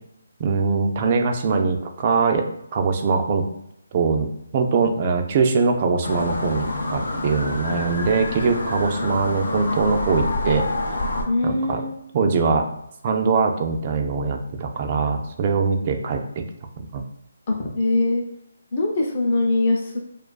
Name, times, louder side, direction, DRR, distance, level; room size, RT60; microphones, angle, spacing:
voice 1, 0.4-2.5 2.7-3.5 3.9-4.3 4.5-10.7 11.4-11.8 12.1-12.7 13.0-16.4 16.8-17.0, right 4 dB, 35° right, 4 dB, 0.3 m, -22 dB
sound 1, 6.0-11.2, left 2 dB, 85° left, 0.5 m, -27 dB
voice 2, 11.3-11.9 17.5-18.2 18.7-20.0, left 2 dB, 40° left, 1 dB, 0.5 m, -22 dB
2.4 x 2.3 x 2.2 m, 0.76 s
hypercardioid pair, 160°, 0 cm